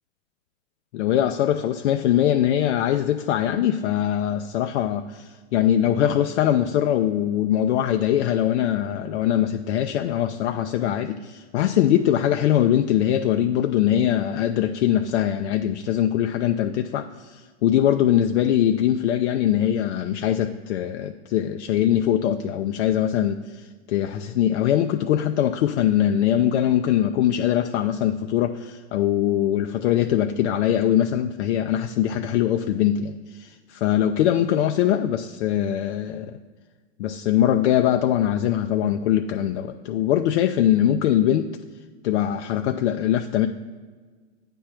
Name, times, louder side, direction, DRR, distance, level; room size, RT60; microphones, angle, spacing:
voice 1, 0.9-36.4 37.0-41.5 42.0-43.5, left 11 dB, 70° left, 6 dB, 0.5 m, -22 dB
8.5 x 3.6 x 5.8 m, 1.5 s
hypercardioid pair, 120°, 35 cm